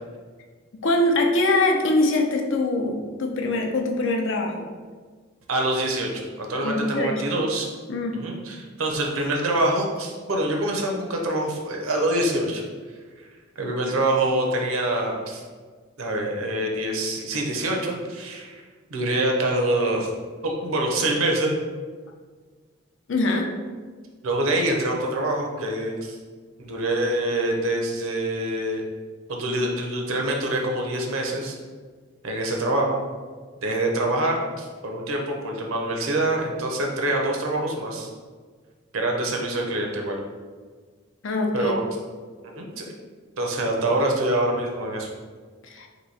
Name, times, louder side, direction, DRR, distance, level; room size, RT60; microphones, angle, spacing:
voice 1, 0.8-4.7 6.6-7.1 7.9-8.2 23.1-23.5 41.2-41.7 45.6-45.9, left 2 dB, 65° left, 2 dB, 0.5 m, -23 dB
voice 2, 5.5-7.7 8.1-12.6 13.2-13.3 13.6-15.4 16.0-18.6 18.9-20.1 20.4-21.5 24.2-26.2 26.6-28.8 29.3-31.5 32.2-33.0 33.6-38.1 38.9-40.2 41.5-41.8 42.4-42.9 43.4-45.1, right 1 dB, 90° right, 1 dB, 0.7 m, -25 dB
3.0 x 2.7 x 4.1 m, 1.5 s
head